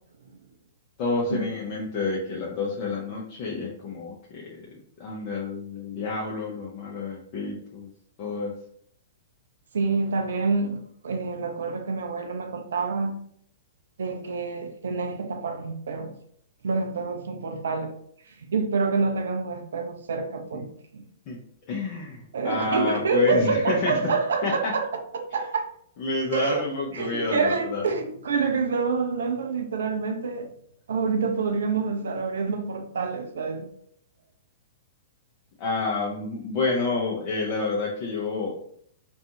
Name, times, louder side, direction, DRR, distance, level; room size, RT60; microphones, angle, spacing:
voice 1, 1.0-7.9 8.2-8.5 20.5-20.6 21.3-21.4 21.7-24.0 24.4-24.7 26.0-27.9 35.6-38.5, left 3 dB, 40° left, 0.5 m, -29 dB
voice 2, 9.7-13.2 14.0-16.1 16.6-18.0 18.3-20.7 20.9-21.0 22.3-24.9 25.1-25.6 26.3-26.7 26.9-30.5 30.9-33.7, right 4 dB, 65° right, 0.4 m, -27 dB
2.6 x 2.3 x 2.7 m
figure-of-eight pair, 105°, 0 cm